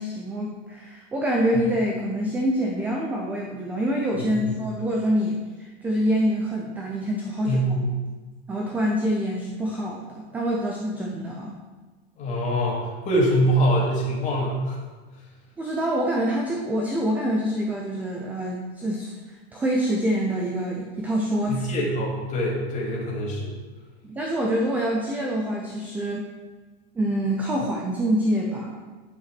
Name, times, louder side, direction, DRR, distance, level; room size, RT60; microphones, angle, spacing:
voice 1, 0.0-7.6 8.5-11.6 15.6-19.1 19.5-21.7 24.0-26.3 27.0-28.8, equal, 5° right, -1 dB, 0.3 m, -26 dB
voice 2, 4.2-4.5 7.5-7.9 12.2-14.8 21.5-23.5, equal, 20° left, -3 dB, 2.3 m, -24 dB
10.5 x 5.7 x 5.9 m, 1.3 s
supercardioid pair, 165°, 32 cm